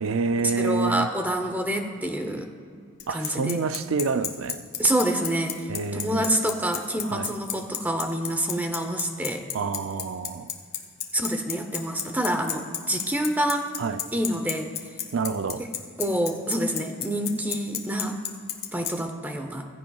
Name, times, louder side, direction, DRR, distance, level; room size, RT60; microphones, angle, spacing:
voice 1, 0.0-1.1 3.1-4.7 5.7-6.3 7.0-7.3 9.5-10.5 13.8-14.0 15.1-15.6, right 4 dB, 85° right, 11 dB, 0.5 m, -27 dB
voice 2, 0.6-2.5 3.1-3.7 4.8-5.7 5.9-9.4 11.1-13.7 14.1-14.7 16.0-18.2 18.7-19.7, right 1 dB, 10° right, 5 dB, 0.8 m, -27 dB
Bicycle, 3.0-18.9, left 10 dB, 55° left, 1.2 m, -30 dB
16.0 x 15.5 x 2.4 m, 2.2 s
head